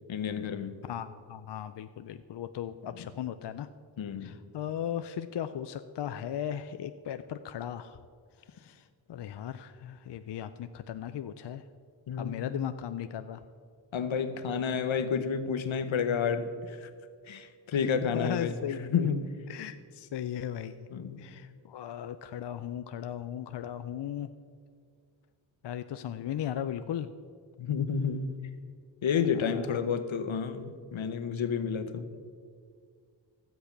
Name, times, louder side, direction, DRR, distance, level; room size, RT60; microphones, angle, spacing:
voice 1, 0.1-0.8 3.0-3.1 4.0-4.3 12.1-12.5 13.9-16.9 17.3-19.3 20.9-21.3 26.1-26.3 27.6-28.3 29.0-32.1, left 6 dB, 80° left, 10 dB, 0.9 m, -30 dB
voice 2, 0.9-3.7 4.2-8.0 8.5-11.6 12.2-13.4 17.3-17.4 18.0-18.9 19.5-20.9 21.2-24.3 25.6-27.1 29.5-29.8, left 10 dB, 60° left, 10 dB, 0.5 m, -37 dB
12.5 x 8.2 x 5.8 m, 2.1 s
wide cardioid pair, 70°, 46 cm